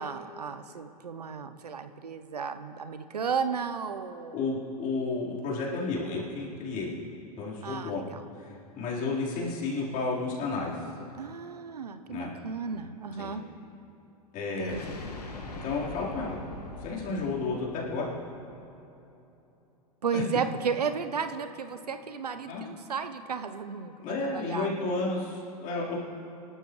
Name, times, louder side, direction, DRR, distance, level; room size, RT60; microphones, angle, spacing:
voice 1, 0.0-4.4 7.6-8.2 11.2-13.4 14.6-14.8 20.0-23.9 24.2-24.9, right 6 dB, 90° right, 10 dB, 0.7 m, -34 dB
voice 2, 4.3-6.9 7.4-8.1 8.4-10.9 12.1-12.4 13.2-13.3 14.3-14.9 15.6-16.4 16.8-18.1 20.1-20.2 22.4-22.6 24.0-26.0, left 3 dB, 40° left, -5 dB, 4.1 m, -32 dB
sound 1, 14.7-18.6, left 2 dB, 85° left, 2.0 m, -42 dB
25.0 x 12.0 x 3.2 m, 2.8 s
hypercardioid pair, 100°, 20 cm